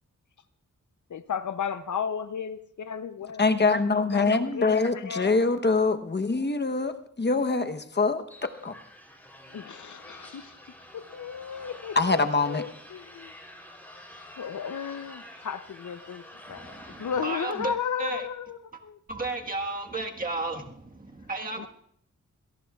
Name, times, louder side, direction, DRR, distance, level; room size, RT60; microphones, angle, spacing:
voice 1, 1.1-3.4 4.0-5.3 6.3-6.5 9.5-10.5 10.9-12.2 12.5-13.3 14.4-16.2 16.5-16.6 17.0-18.6 18.8-19.0 21.6-21.7, left 7 dB, 70° left, 0.7 m, -34 dB
voice 2, 3.4-8.7 11.9-12.6, left 3 dB, 35° left, 1.0 m, -24 dB
sound 1, 8.3-17.7, left 1 dB, 5° left, 3.4 m, -48 dB
voice 3, 16.5-18.3 19.1-21.7, right 3 dB, 25° right, 1.5 m, -34 dB
26.5 x 18.0 x 2.4 m
wide cardioid pair, 125°, 31 cm